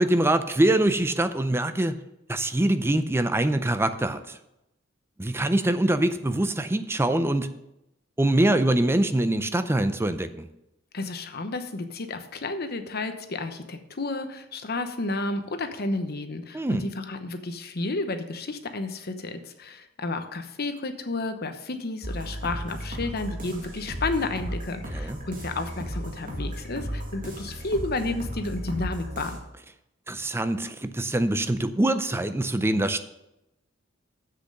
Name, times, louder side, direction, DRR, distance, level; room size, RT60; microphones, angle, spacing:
voice 1, 0.0-2.0 2.3-4.4 5.2-7.5 8.2-10.5 16.5-16.9 24.9-25.2 30.1-33.0, right 1 dB, 10° right, 10 dB, 0.5 m, -24 dB
voice 2, 10.9-29.4, left 2 dB, 50° left, 8 dB, 0.9 m, -31 dB
sound 1, 22.0-29.4, equal, 45° right, 1.9 m, -35 dB
7.7 x 6.8 x 6.6 m, 0.89 s
head